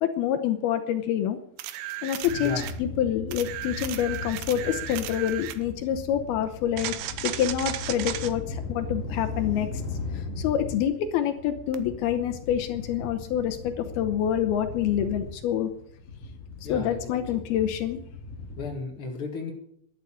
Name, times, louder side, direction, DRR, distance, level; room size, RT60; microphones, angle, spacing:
voice 1, 0.0-1.4 2.0-9.7 10.1-15.7 16.7-18.0, left 10 dB, 80° left, 2.3 m, -27 dB
sound 1, 1.6-2.8 3.3-5.6 6.8-8.3 11.7-11.8, right 13 dB, 75° right, 2.6 m, -35 dB
sound 2, 2.2-18.7, left 3 dB, 35° left, 3.3 m, -38 dB
voice 2, 2.4-2.7 16.6-17.4 18.6-19.5, left 4 dB, 60° left, 1.4 m, -34 dB
13.0 x 11.0 x 8.7 m
omnidirectional pair, 5.6 m